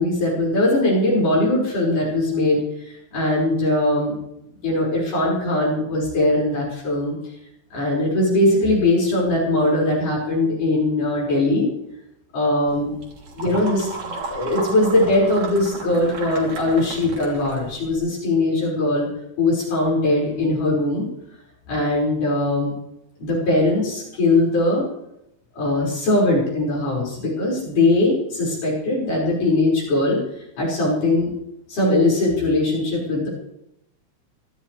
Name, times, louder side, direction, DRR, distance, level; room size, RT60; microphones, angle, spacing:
voice 1, 0.0-4.2 4.6-7.1 7.7-11.7 12.3-12.9 13.4-19.1 19.4-21.1 21.7-22.7 23.2-24.9 25.6-30.2 30.6-31.3 31.7-33.3, left 2 dB, 90° left, -5 dB, 7.3 m, -20 dB
sound 1, 12.7-18.0, right 2 dB, 65° right, 4.5 m, -34 dB
26.0 x 13.5 x 3.4 m, 0.82 s
omnidirectional pair, 3.5 m